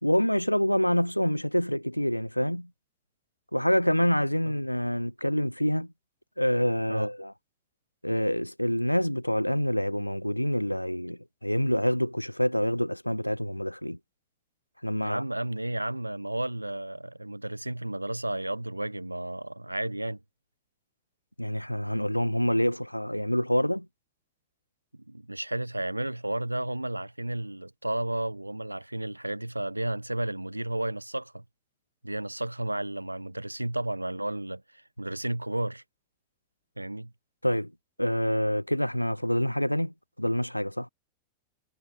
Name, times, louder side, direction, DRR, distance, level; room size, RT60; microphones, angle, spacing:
voice 1, 0.0-2.7 3.5-5.9 6.4-7.3 8.0-14.0 14.8-15.2 21.4-23.9 37.4-37.7 38.0-40.9, equal, 90° left, 1.5 m, -26 dB
voice 2, 15.0-20.2 24.9-31.4 32.0-35.8 36.8-37.1, right 1 dB, 85° right, 1.3 m, -32 dB
figure-of-eight pair, 90°, 0 cm